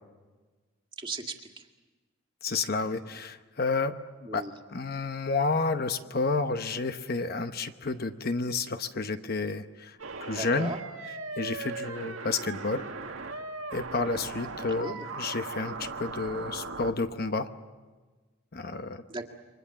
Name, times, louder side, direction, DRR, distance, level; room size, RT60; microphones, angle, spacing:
voice 1, 1.0-1.6 4.2-4.5 10.3-10.8 14.8-15.1 19.1-19.3, right 2 dB, 25° right, 2 dB, 1.9 m, -37 dB
voice 2, 2.4-3.9 4.3-10.7 11.4-12.8 13.7-17.5 18.5-19.0, left 3 dB, 50° left, 9 dB, 0.9 m, -30 dB
sound 1, 10.0-16.9, right 3 dB, 85° right, 1.7 m, -38 dB
29.5 x 24.0 x 7.2 m, 1.3 s
head